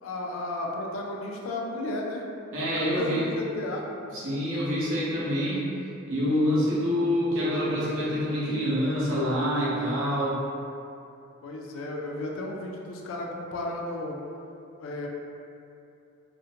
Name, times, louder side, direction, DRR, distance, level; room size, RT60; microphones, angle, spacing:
voice 1, 0.0-2.2 2.5-3.9 11.4-14.2 14.8-15.1, left 2 dB, 70° left, -1 dB, 0.4 m, -33 dB
voice 2, 2.5-3.2 4.1-5.7 6.1-10.4, equal, 70° right, -8 dB, 0.8 m, -26 dB
2.5 x 2.1 x 2.7 m, 2.6 s
head